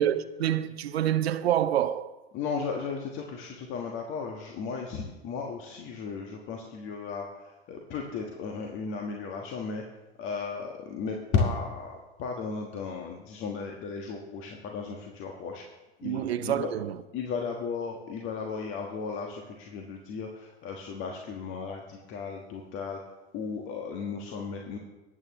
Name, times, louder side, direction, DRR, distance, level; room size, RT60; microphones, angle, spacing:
voice 1, 0.0-2.1 16.0-17.0, right 11 dB, 70° right, 0.7 m, -27 dB
voice 2, 2.3-9.8 10.2-15.6 16.0-16.7 17.1-23.0 23.3-24.8, left 5 dB, 40° left, 1.5 m, -35 dB
19.5 x 8.8 x 3.1 m
figure-of-eight pair, 85°, 32 cm